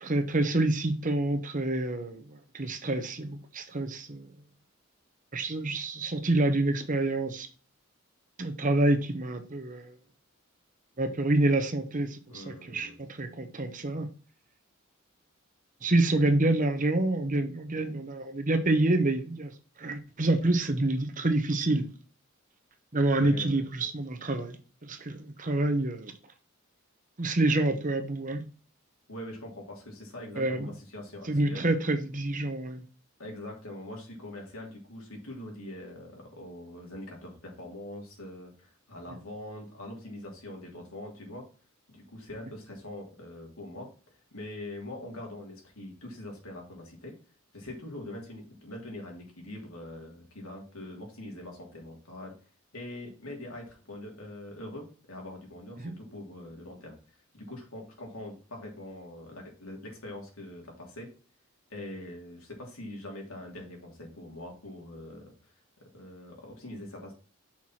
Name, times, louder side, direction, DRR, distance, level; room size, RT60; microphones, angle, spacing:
voice 1, 0.0-4.3 5.3-7.5 8.4-10.0 11.0-14.1 15.8-19.5 19.8-21.9 22.9-24.6 24.8-26.1 27.2-28.4 30.4-30.7 31.2-32.8 55.8-56.0, right 2 dB, 40° right, 1.0 m, -27 dB
voice 2, 12.3-13.0 16.1-16.3 23.2-23.6 25.1-25.2 29.1-31.6 33.2-41.4 41.9-43.9 44.3-47.1 47.5-52.3 52.7-57.0 57.3-61.1 61.7-65.5 65.9-67.1, left 1 dB, 80° left, 3.1 m, -43 dB
5.9 x 4.7 x 5.8 m
head